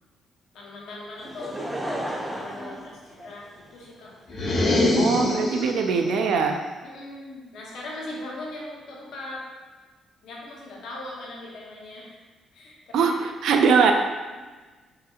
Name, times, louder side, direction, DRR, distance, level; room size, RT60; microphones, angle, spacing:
voice 1, 0.5-1.5 2.4-4.2 4.7-5.0 5.7-5.8 6.8-9.4 10.2-12.1 12.5-13.1, left 2 dB, 80° left, -4 dB, 1.0 m, -39 dB
Laughter / Crowd, 1.2-3.8 4.5-4.6, right 1 dB, 10° right, 0.5 m, -33 dB
sound 1, 4.3-5.9, left 2 dB, 55° left, 1.2 m, -23 dB
voice 2, 5.0-6.6 12.9-13.9, right 5 dB, 80° right, 4 dB, 0.4 m, -21 dB
4.8 x 2.8 x 2.4 m, 1.3 s
cardioid pair, 90°, 0 cm